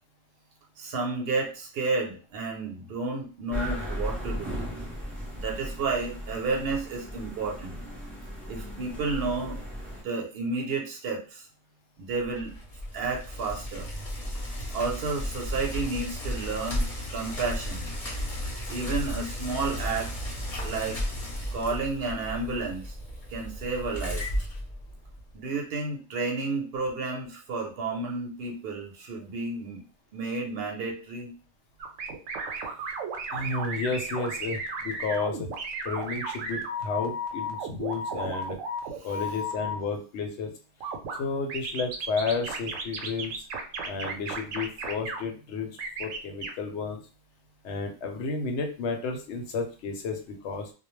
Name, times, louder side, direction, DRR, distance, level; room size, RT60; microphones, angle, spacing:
voice 1, 0.8-4.6 5.4-7.8 8.5-9.6 10.0-11.5 12.0-12.5 12.9-13.9 14.7-16.8 17.1-17.9 18.7-20.1 20.6-21.0 21.5-22.9 23.3-24.3 25.3-29.8 30.1-31.3 39.0-39.4, right 3 dB, 55° right, 0 dB, 0.8 m, -31 dB
sound 1, 3.5-10.0, equal, ahead, 0.5 m, -36 dB
Bicycle, 12.2-25.3, equal, 35° left, 0.7 m, -34 dB
sound 2, 31.8-39.7 40.8-41.2 41.5-45.2 45.8-46.5, right 2 dB, 90° right, 1.0 m, -34 dB
voice 2, 33.3-35.5 35.8-38.6 39.0-40.5 41.2-43.3 43.8-47.0 47.6-50.7, left 4 dB, 70° left, 5 dB, 0.9 m, -32 dB
2.2 x 2.1 x 3.1 m, 0.36 s
omnidirectional pair, 1.3 m